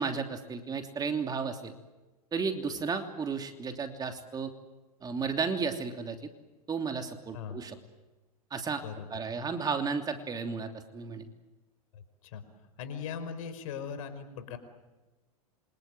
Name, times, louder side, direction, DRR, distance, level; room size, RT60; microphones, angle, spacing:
voice 1, 0.0-1.7 2.3-4.5 5.0-6.3 6.7-7.7 8.5-8.8 9.1-11.3, right 5 dB, 20° right, 5 dB, 3.0 m, -33 dB
voice 2, 11.9-12.4 12.8-14.6, left 7 dB, 65° left, 10 dB, 5.2 m, -39 dB
28.0 x 25.5 x 7.8 m, 1.1 s
hypercardioid pair, 105°, 19 cm